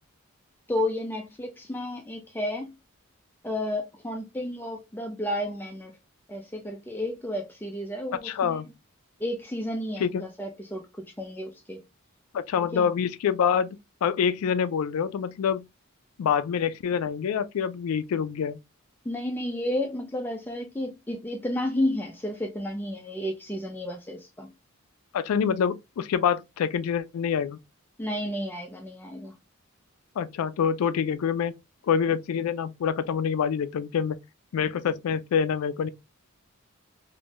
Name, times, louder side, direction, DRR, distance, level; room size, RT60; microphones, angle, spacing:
voice 1, 0.7-2.7 3.4-5.9 6.3-8.6 9.2-11.8 12.7-12.9 19.1-24.5 28.0-29.3, left 1 dB, 10° left, 0.4 m, -32 dB
voice 2, 8.2-8.7 10.0-10.2 12.3-15.6 16.2-18.6 25.1-27.6 30.2-31.5 31.9-34.2 34.5-35.9, left 7 dB, 90° left, 0.3 m, -26 dB
3.5 x 2.6 x 2.4 m
head